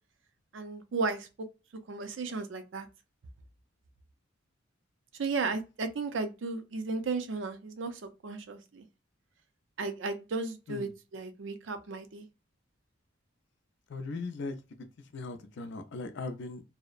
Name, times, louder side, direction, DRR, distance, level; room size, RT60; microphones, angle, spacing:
voice 1, 0.5-1.3 1.9-2.9 5.2-8.9 9.8-12.3, right 4 dB, 70° right, 0.5 m, -34 dB
voice 2, 13.9-14.6 15.1-16.6, left 3 dB, 65° left, 0.5 m, -38 dB
2.7 x 2.0 x 2.4 m
head